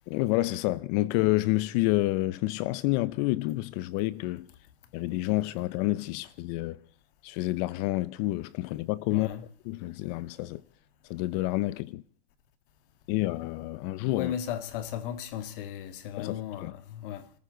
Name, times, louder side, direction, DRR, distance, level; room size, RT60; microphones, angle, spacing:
voice 1, 0.1-4.5 4.9-6.8 7.2-9.3 9.7-10.6 11.1-12.0 13.1-14.3 16.2-16.7, left 18 dB, 40° left, 0.7 m, -28 dB
voice 2, 9.1-9.5 13.7-13.9 14.1-17.3, left 10 dB, 55° left, 2.0 m, -36 dB
25.5 x 14.5 x 3.9 m
supercardioid pair, 150°, 32 cm